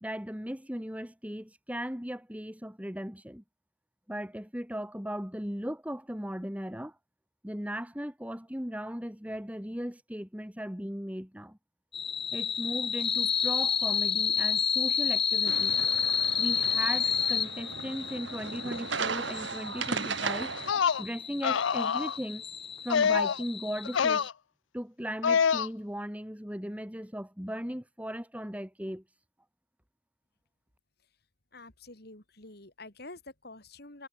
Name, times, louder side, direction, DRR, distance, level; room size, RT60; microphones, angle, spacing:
voice 1, 0.0-3.4 4.1-7.0 7.4-11.6 12.3-15.8 16.4-20.5 21.0-22.4 22.8-24.3 24.7-29.0, equal, 5° right, 2.5 m, -37 dB
sound 1, 11.9-24.3, left 7 dB, 30° left, 3.2 m, -30 dB
sound 2, 15.4-20.7, right 5 dB, 70° right, 2.0 m, -36 dB
sound 3, 20.6-21.0 21.4-22.2 22.9-23.4 23.8-24.3 25.2-25.7, left 6 dB, 75° left, 0.5 m, -26 dB
voice 2, 31.5-34.1, left 2 dB, 55° left, 3.8 m, -48 dB
head